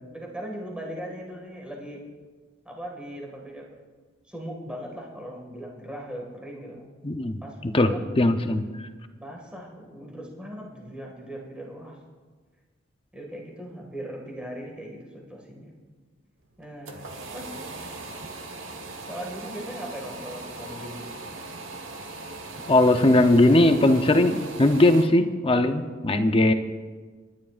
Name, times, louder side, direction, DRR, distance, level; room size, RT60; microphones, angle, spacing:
voice 1, 0.1-2.0 2.6-3.7 4.3-6.9 7.4-8.1 9.1-12.0 13.1-15.8 16.6-17.6 19.1-21.2, equal, 5° right, -1 dB, 2.0 m, -39 dB
voice 2, 7.0-8.7 22.7-26.5, left 1 dB, 30° left, 7 dB, 0.7 m, -19 dB
sound 1, 16.5-25.1, right 2 dB, 85° right, 1.4 m, -39 dB
29.5 x 11.0 x 2.5 m, 1.5 s
head